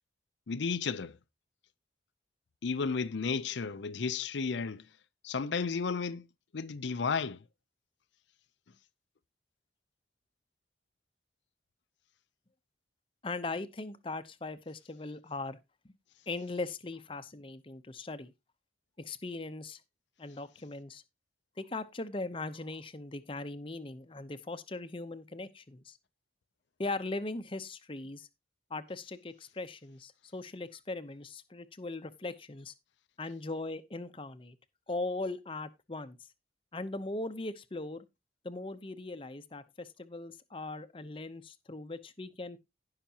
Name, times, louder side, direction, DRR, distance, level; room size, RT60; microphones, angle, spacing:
voice 1, 0.5-1.2 2.6-4.8 5.2-6.2 6.5-7.4, left 5 dB, 80° left, 0.6 m, -33 dB
voice 2, 13.2-15.6 15.8-15.9 16.3-18.3 19.0-19.8 20.2-21.0 21.6-26.0 26.8-28.3 28.7-32.7 33.2-34.6 34.9-36.2 36.7-38.0 38.4-42.6, left 2 dB, 30° left, 0.7 m, -39 dB
17.5 x 5.8 x 2.8 m
head